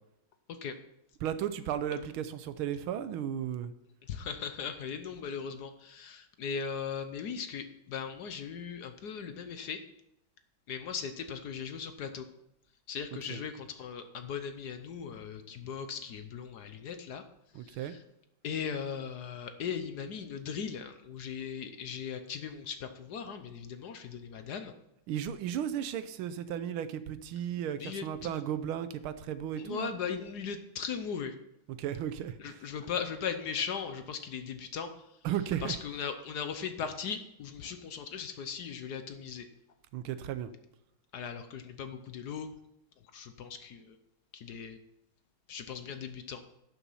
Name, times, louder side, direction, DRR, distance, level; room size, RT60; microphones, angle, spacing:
voice 1, 1.2-3.7 13.3-13.4 17.5-17.9 25.1-29.9 31.7-32.6 35.2-35.8 39.9-40.5, right 10 dB, 90° right, 12 dB, 1.6 m, -35 dB
voice 2, 4.1-9.8 10.7-12.2 12.9-17.2 17.6-18.0 18.4-24.7 27.8-28.3 29.6-31.3 32.4-34.9 35.6-39.5 41.1-42.5 43.1-44.0 44.3-44.8 45.5-46.4, left 6 dB, 60° left, 8 dB, 1.2 m, -38 dB
11.5 x 7.1 x 5.6 m, 0.82 s
omnidirectional pair, 2.2 m